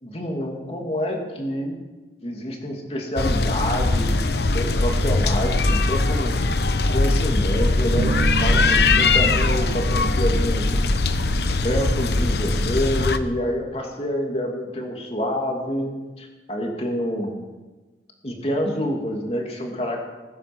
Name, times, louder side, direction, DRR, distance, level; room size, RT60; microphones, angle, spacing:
voice 1, 0.0-1.8 2.2-4.2 4.5-6.3 6.9-8.1 8.4-10.7 11.6-15.9 16.2-17.3 18.2-20.0, equal, 35° left, 1 dB, 2.7 m, -27 dB
sound 1, 3.2-13.2, left 3 dB, 70° left, 0.9 m, -21 dB
Bass guitar, 8.0-11.7, right 4 dB, 85° right, 0.4 m, -31 dB
20.0 x 10.0 x 6.2 m, 1.2 s
head